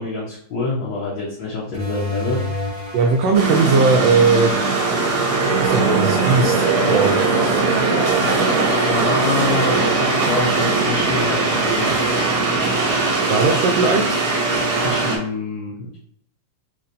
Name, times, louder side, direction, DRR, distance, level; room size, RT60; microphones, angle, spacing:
voice 1, 0.0-2.4 8.8-11.8 14.8-16.0, left 3 dB, 70° left, -5 dB, 1.2 m, -26 dB
sound 1, 1.7-6.9, left 2 dB, 25° left, 1.1 m, -32 dB
voice 2, 2.9-4.5 5.6-7.1 13.3-14.2, right 4 dB, 80° right, 2 dB, 1.4 m, -18 dB
sound 2, 3.3-15.2, right 3 dB, 55° right, 1.2 m, -19 dB
4.4 x 3.7 x 2.6 m, 0.65 s
omnidirectional pair, 3.3 m